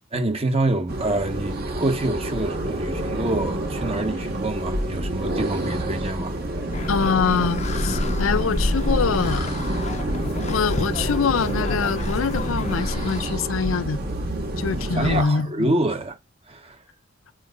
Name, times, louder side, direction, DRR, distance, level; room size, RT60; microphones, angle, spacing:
voice 1, 0.1-6.4 14.9-16.2 16.5-16.8, right 2 dB, 30° right, 1.1 m, -26 dB
sound 1, 0.9-15.2, right 1 dB, 50° right, 1.7 m, -28 dB
sound 2, 6.7-13.2, left 2 dB, 35° left, 0.8 m, -28 dB
voice 2, 6.9-9.5 10.5-14.0 14.6-15.7, left 5 dB, 85° left, 0.5 m, -24 dB
8.6 x 4.7 x 2.5 m
head